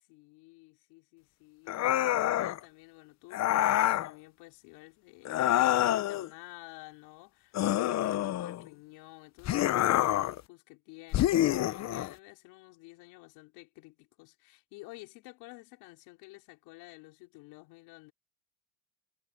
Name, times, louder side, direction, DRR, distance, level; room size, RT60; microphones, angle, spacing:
voice 1, 0.1-18.1, left 23 dB, 75° left, 4.9 m, -51 dB
sound 1, 1.7-2.6 3.3-4.1 5.2-6.3 7.5-8.7 9.4-10.4 11.1-12.1, left 13 dB, 45° left, 0.9 m, -27 dB
supercardioid pair, 105°, 38 cm